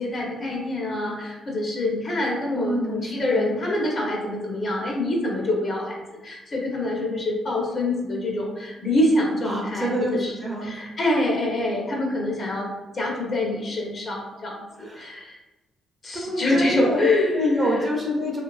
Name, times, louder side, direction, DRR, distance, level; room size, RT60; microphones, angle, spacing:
voice 1, 0.0-6.0 6.2-10.3 10.6-12.7 12.9-15.4 16.0-17.4, left 1 dB, 40° left, -1 dB, 0.7 m, -25 dB
voice 2, 2.5-3.6 9.4-10.8 14.8-15.1 16.1-17.0 17.3-18.4, equal, 25° right, -2 dB, 0.7 m, -27 dB
2.6 x 2.3 x 2.3 m, 1.1 s
cardioid pair, 90°, 0 cm